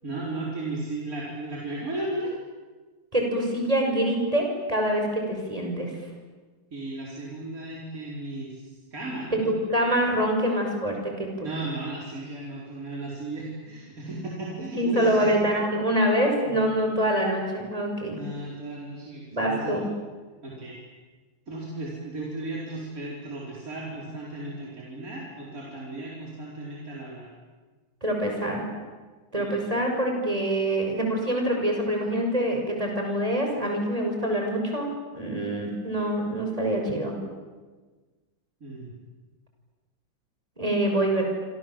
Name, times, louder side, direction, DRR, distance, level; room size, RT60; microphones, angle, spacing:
voice 1, 0.0-2.4 6.7-9.5 11.4-15.3 16.5-16.7 18.1-19.8 20.4-20.8 21.5-27.3 29.4-29.6 38.6-38.9, right 2 dB, 45° right, -5 dB, 5.2 m, -35 dB
voice 2, 3.1-5.9 9.4-11.5 14.8-18.2 19.3-19.9 28.0-28.7 29.3-37.2 40.6-41.3, right 1 dB, 15° right, 2 dB, 6.3 m, -25 dB
27.0 x 27.0 x 7.6 m, 1.3 s
omnidirectional pair, 2.1 m